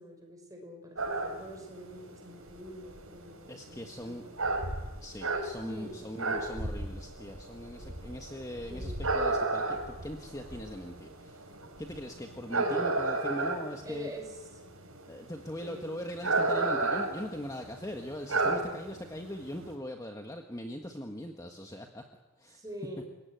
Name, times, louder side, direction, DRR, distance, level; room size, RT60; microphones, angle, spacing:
voice 1, 0.0-4.6 5.6-6.0 8.7-9.1 12.5-12.9 13.8-14.4 15.6-15.9 18.4-18.8 22.5-23.0, equal, 15° right, 3 dB, 6.3 m, -45 dB
sound 1, 1.0-19.7, right 2 dB, 70° right, 5.1 m, -33 dB
voice 2, 3.5-4.2 5.0-11.5 11.8-14.1 15.1-22.0 22.4-22.6, equal, 15° left, 3 dB, 1.6 m, -41 dB
29.5 x 17.5 x 9.4 m, 1.1 s
head